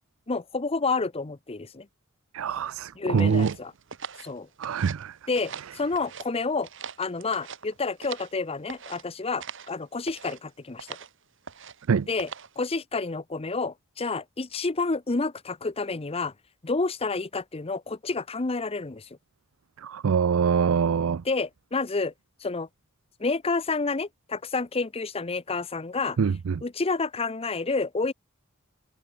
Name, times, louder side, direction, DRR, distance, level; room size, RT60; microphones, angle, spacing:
voice 1, 0.3-1.9 3.0-3.7 4.2-4.5 5.3-6.7 7.0-10.9 12.1-16.3 16.6-19.1 21.2-22.1 22.4-22.7 23.2-26.2 26.6-28.1, left 3 dB, 30° left, 0.7 m, -29 dB
voice 2, 2.3-3.5 4.6-5.1 11.9-12.1 19.8-21.2 26.2-26.5, right 6 dB, 80° right, 0.4 m, -24 dB
sound 1, 3.2-5.1 5.3-6.3 6.6-8.4 8.7-9.0 9.4-9.7 10.0-10.4 10.8-11.1 11.4-11.9 12.2-12.6, right 6 dB, 65° right, 2.3 m, -41 dB
head